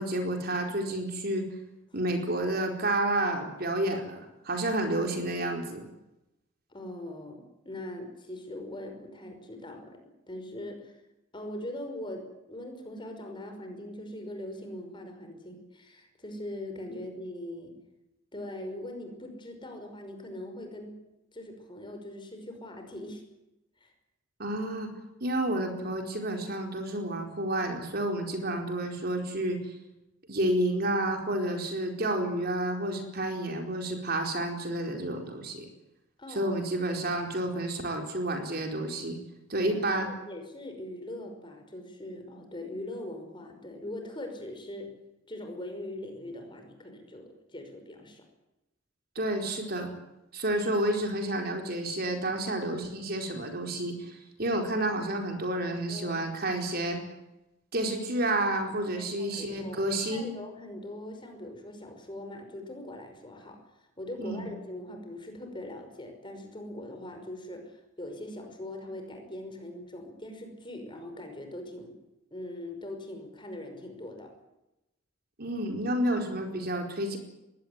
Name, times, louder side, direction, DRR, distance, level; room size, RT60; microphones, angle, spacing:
voice 1, 0.0-1.5 1.9-5.8 16.9-17.0 24.4-24.9 25.2-29.6 30.3-35.7 36.3-39.2 39.5-40.1 49.1-49.9 50.3-57.0 57.7-60.3 64.2-64.5 75.4-77.2, right 1 dB, 50° right, 3 dB, 4.4 m, -30 dB
voice 2, 6.7-10.9 11.3-17.7 18.3-21.0 21.3-23.2 23.8-23.9 36.2-36.6 39.6-44.9 45.3-48.2 55.5-56.6 59.0-63.6 64.0-72.0 72.3-74.3, left 1 dB, 25° left, 5 dB, 5.5 m, -41 dB
22.0 x 17.0 x 9.6 m, 0.91 s
head